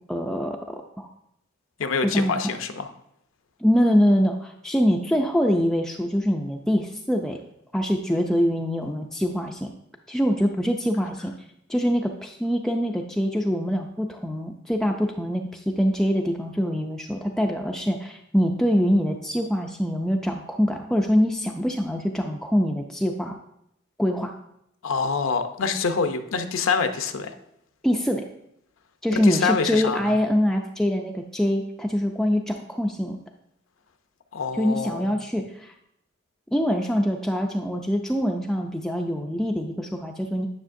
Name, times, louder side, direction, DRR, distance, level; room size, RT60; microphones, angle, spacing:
voice 1, 0.1-1.1 2.0-2.5 3.6-7.4 7.7-9.7 10.1-11.3 11.7-23.4 24.0-24.3 27.8-28.3 29.0-33.2 34.5-35.7 36.5-40.5, equal, 5° left, 2 dB, 0.3 m, -24 dB
voice 2, 1.8-2.9 24.8-27.3 29.1-30.2 34.3-35.2, left 5 dB, 70° left, 8 dB, 0.6 m, -26 dB
9.9 x 6.4 x 2.6 m, 0.78 s
head